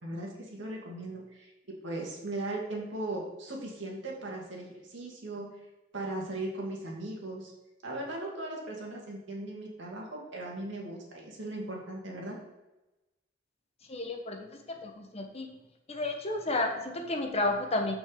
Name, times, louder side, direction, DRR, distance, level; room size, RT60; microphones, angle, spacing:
voice 1, 0.0-5.5 5.9-7.5 7.8-12.4, right 2 dB, 70° right, -2 dB, 2.3 m, -38 dB
voice 2, 13.9-15.5 15.9-17.9, left 2 dB, 35° left, 4 dB, 1.1 m, -32 dB
6.0 x 6.0 x 6.7 m, 1.0 s
head